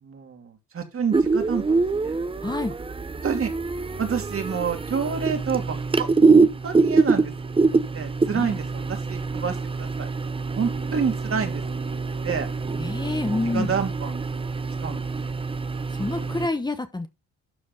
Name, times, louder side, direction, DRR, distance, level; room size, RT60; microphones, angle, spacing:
voice 1, 0.0-2.5 3.2-3.5 4.0-6.1 6.6-7.3 7.9-10.1 10.5-11.6 11.9-12.5 13.5-14.2 14.8-15.0, right 6 dB, 45° right, 2.7 m, -28 dB
sound 1, 1.1-16.5, right 4 dB, 20° right, 0.8 m, -24 dB
voice 2, 2.4-2.8 8.3-8.6 12.8-13.7 15.9-17.1, left 2 dB, 15° left, 1.1 m, -28 dB
12.0 x 4.4 x 5.5 m
cardioid pair, 90°, 30 cm